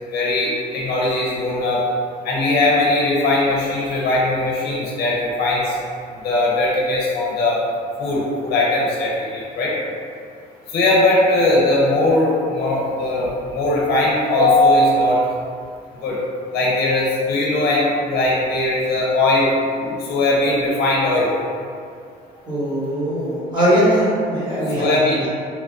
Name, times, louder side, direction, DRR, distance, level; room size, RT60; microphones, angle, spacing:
voice 1, 0.1-1.8 2.2-5.7 6.2-7.6 8.0-9.7 10.7-15.2 16.0-16.2 16.5-19.5 19.8-21.3 24.8-25.2, left 2 dB, 65° left, -4 dB, 0.7 m, -19 dB
voice 2, 22.5-25.3, right 1 dB, 25° right, -9 dB, 1.1 m, -20 dB
3.0 x 2.2 x 2.5 m, 2.3 s
cardioid pair, 110°, 17 cm